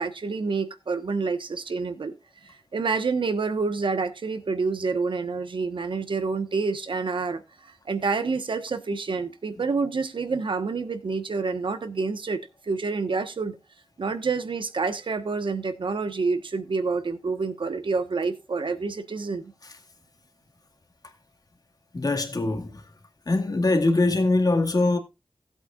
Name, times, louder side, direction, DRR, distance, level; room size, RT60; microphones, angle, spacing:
voice 1, 0.0-2.1 2.4-13.6 14.0-19.5, right 4 dB, 65° right, 1.3 m, -28 dB
voice 2, 21.9-22.8 23.3-25.0, left 2 dB, 45° left, 2.0 m, -22 dB
16.0 x 8.0 x 2.5 m
wide cardioid pair, 65°, 9 cm